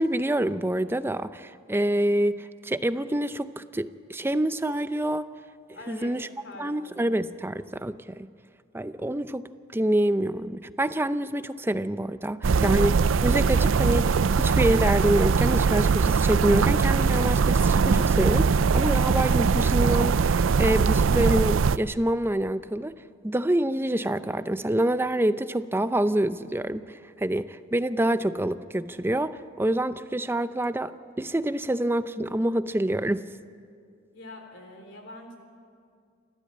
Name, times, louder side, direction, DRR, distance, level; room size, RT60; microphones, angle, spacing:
voice 1, 0.0-5.3 5.9-6.3 6.6-8.3 8.7-9.5 9.7-12.9 13.2-22.9 23.2-30.9 31.2-33.2, right 1 dB, 10° right, 12 dB, 0.5 m, -26 dB
voice 2, 5.7-7.1 12.5-12.8 34.1-35.4, left 1 dB, 65° left, 4 dB, 3.7 m, -44 dB
sound 1, 12.4-21.8, right 5 dB, 90° right, 0.5 m, -21 dB
28.0 x 13.5 x 8.8 m, 2.2 s
head